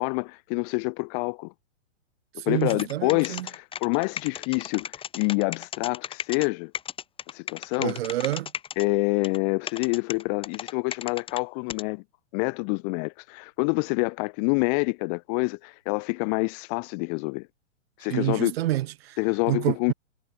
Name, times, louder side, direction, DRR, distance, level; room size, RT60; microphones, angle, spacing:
voice 1, 0.0-1.5 2.4-6.7 7.3-8.0 8.8-12.0 12.3-17.5 18.0-18.5 19.2-19.9, left 39 dB, 30° left, 1.2 m, -27 dB
voice 2, 2.4-3.5 7.8-8.5 18.1-19.2 19.5-19.9, right 15 dB, 50° right, 1.1 m, -28 dB
sound 1, 2.6-6.5 6.7-8.8 9.2-9.4 9.7-11.4 11.7-11.8, left 8 dB, 15° left, 1.6 m, -35 dB
hypercardioid pair, 140°, 38 cm